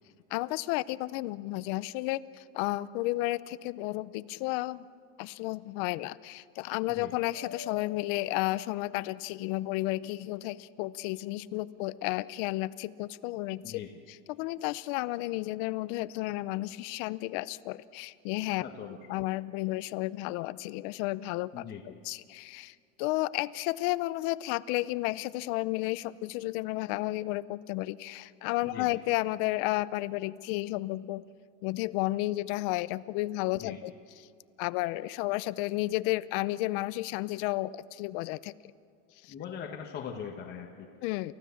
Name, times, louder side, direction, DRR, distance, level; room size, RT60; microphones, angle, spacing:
voice 1, 0.3-4.8 5.2-13.8 14.1-18.6 19.1-31.3 31.6-33.9 34.6-38.5 39.2-39.3 41.0-41.3, left 18 dB, 50° left, 17 dB, 0.6 m, -32 dB
Mallet percussion, 7.3-9.4, left 8 dB, 40° right, 4.1 m, -47 dB
voice 2, 18.6-19.0 21.5-21.8 28.6-29.0 33.5-33.8 39.3-40.9, left 8 dB, 30° left, 0 dB, 1.5 m, -41 dB
29.5 x 15.0 x 7.1 m, 2.4 s
supercardioid pair, 155°, 35 cm